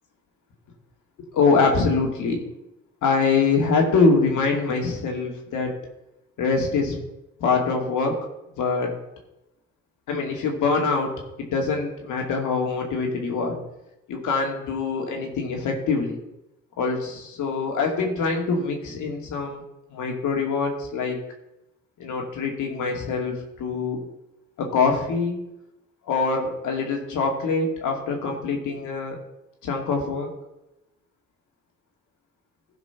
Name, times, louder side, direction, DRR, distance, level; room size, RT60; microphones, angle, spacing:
voice 1, 1.3-2.4 3.0-5.8 6.4-7.0 7.4-8.2 8.6-8.9 10.1-11.1 11.4-13.6 14.1-16.2 16.8-19.6 19.9-21.2 22.0-24.0 24.6-25.4 26.1-29.2 29.6-30.3, left 4 dB, 80° left, 1 dB, 2.4 m, -24 dB
15.0 x 5.1 x 5.8 m, 0.90 s
cardioid pair, 90°, 30 cm